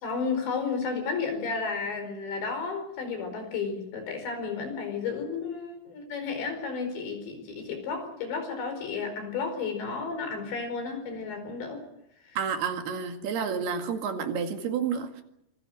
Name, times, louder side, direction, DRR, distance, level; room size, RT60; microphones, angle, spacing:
voice 1, 0.0-11.8, left 5 dB, 80° left, 6 dB, 7.1 m, -32 dB
voice 2, 12.4-15.2, right 6 dB, 65° right, 5 dB, 3.8 m, -30 dB
26.0 x 21.5 x 6.5 m, 0.80 s
omnidirectional pair, 5.0 m